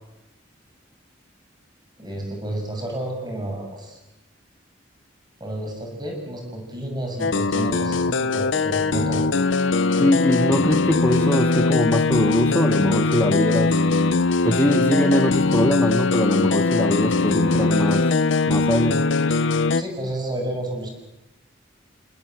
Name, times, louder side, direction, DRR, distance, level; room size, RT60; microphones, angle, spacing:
voice 1, 2.0-4.0 5.4-9.2 10.5-10.6 19.7-20.9, right 1 dB, 20° right, 3 dB, 6.8 m, -30 dB
sound 1, 7.2-19.8, left 3 dB, 85° left, 0.8 m, -21 dB
voice 2, 9.9-13.8 14.4-18.2 18.5-19.0, left 1 dB, 10° left, 6 dB, 1.0 m, -22 dB
28.0 x 20.0 x 7.9 m, 0.94 s
head